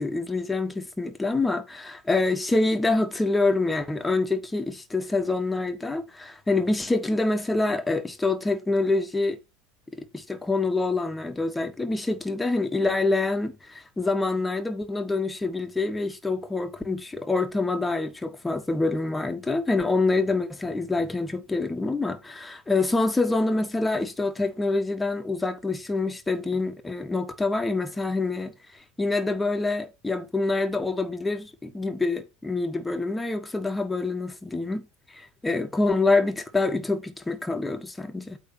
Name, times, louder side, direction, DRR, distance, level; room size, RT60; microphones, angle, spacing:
voice 1, 0.0-9.4 9.9-28.5 29.0-34.9 35.1-38.4, left 3 dB, 10° left, 1.5 m, -26 dB
8.5 x 3.4 x 5.9 m
hypercardioid pair, 80°, 0 cm